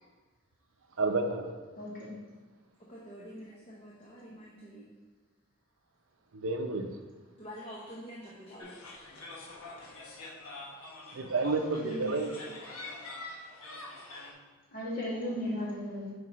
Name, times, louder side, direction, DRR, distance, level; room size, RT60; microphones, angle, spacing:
voice 1, 1.0-1.5 6.3-6.9 11.1-12.5, right 3 dB, 65° right, 6 dB, 0.5 m, -30 dB
voice 2, 1.8-2.1 11.7-12.2 14.7-16.1, equal, 40° left, -6 dB, 1.9 m, -36 dB
voice 3, 2.8-4.9 6.7-6.8 7.4-8.7 15.1-15.7, equal, 25° left, -5 dB, 0.8 m, -47 dB
sound 1, 8.6-14.3, left 2 dB, 85° left, 1.2 m, -45 dB
7.9 x 4.9 x 3.0 m, 1.3 s
head